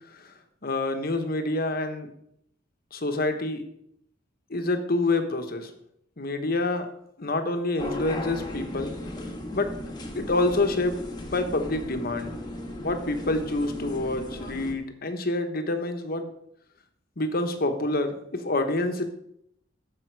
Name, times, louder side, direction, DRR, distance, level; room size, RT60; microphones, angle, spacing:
voice 1, 0.6-2.1 2.9-3.7 4.5-5.7 6.2-6.9 7.2-8.9 9.2-9.7 10.1-11.0 11.3-12.4 12.8-16.3 17.2-19.1, left 2 dB, 50° left, 7 dB, 1.2 m, -27 dB
sound 1, 7.8-14.7, left 1 dB, 20° left, 1.5 m, -36 dB
14.0 x 5.6 x 4.7 m, 0.73 s
head